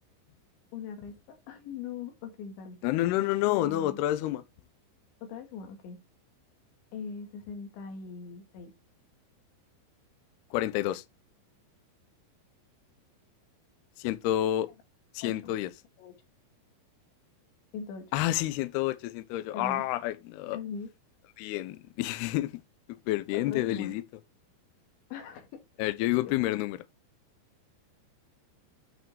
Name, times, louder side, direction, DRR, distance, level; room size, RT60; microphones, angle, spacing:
voice 1, 0.7-2.8 3.5-4.0 5.2-6.0 6.9-8.7 15.2-15.5 16.0-16.2 17.7-18.1 19.5-19.8 20.5-20.9 23.3-24.0 25.1-25.6 26.0-26.6, left 6 dB, 70° left, 4.2 m, -41 dB
voice 2, 2.8-4.4 10.5-11.0 14.0-14.7 15.1-15.7 18.1-20.6 21.4-22.6 22.9-24.0 25.8-26.8, left 15 dB, 90° left, 2.3 m, -29 dB
9.7 x 5.2 x 4.4 m
omnidirectional pair, 5.6 m